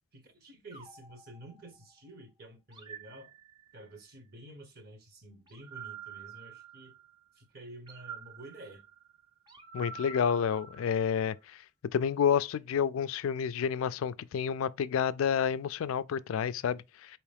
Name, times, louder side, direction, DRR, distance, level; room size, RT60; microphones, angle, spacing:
voice 1, 0.1-3.3 3.7-7.0 7.3-8.8, right 1 dB, 50° right, 1.0 m, -50 dB
sound 1, 0.7-2.1 2.7-4.0 5.5-7.2 7.9-11.4, right 6 dB, 20° right, 0.6 m, -48 dB
voice 2, 9.7-11.4 11.9-17.2, left 7 dB, 85° left, 0.3 m, -29 dB
4.6 x 2.9 x 3.3 m
head